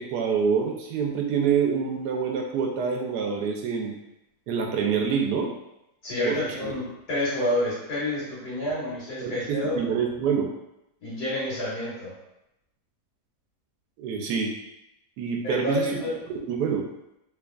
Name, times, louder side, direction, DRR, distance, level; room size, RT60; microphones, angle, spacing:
voice 1, 0.0-3.9 4.5-5.5 6.2-6.7 9.2-10.5 14.0-14.5 15.2-15.9 16.3-16.8, right 6 dB, 90° right, 1 dB, 1.2 m, -26 dB
voice 2, 6.0-6.8 7.1-9.8 11.0-12.1 15.4-16.2, left 1 dB, 75° left, -9 dB, 2.2 m, -28 dB
3.5 x 3.4 x 2.4 m, 0.86 s
omnidirectional pair, 1.7 m